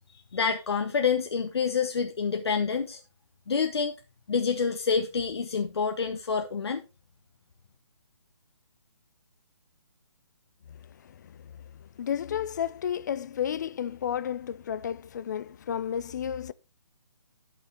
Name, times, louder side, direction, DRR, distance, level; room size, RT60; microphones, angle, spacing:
voice 1, 0.3-3.0 3.5-3.9 4.3-6.8, left 5 dB, 60° left, 1.0 m, -27 dB
voice 2, 11.0-16.5, left 9 dB, 40° left, 0.5 m, -32 dB
11.5 x 5.4 x 4.2 m
figure-of-eight pair, 140°, 15 cm